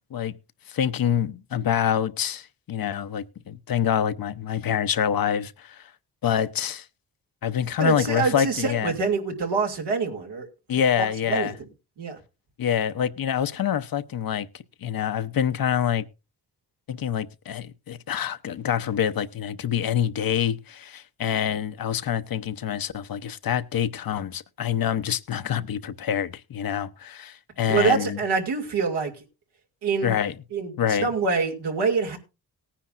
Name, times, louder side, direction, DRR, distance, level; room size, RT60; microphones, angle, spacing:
voice 1, 0.7-5.8 6.2-6.8 7.4-8.9 10.7-11.5 12.6-14.5 14.8-16.1 16.9-28.2 30.0-30.3 30.8-31.1, left 9 dB, 60° left, 0.8 m, -26 dB
voice 2, 7.8-10.5 11.3-11.5 12.0-12.2 27.7-29.1 29.8-30.1 30.5-30.7 31.0-32.2, right 4 dB, 90° right, 2.6 m, -25 dB
18.5 x 10.0 x 2.5 m
cardioid pair, 70°, 39 cm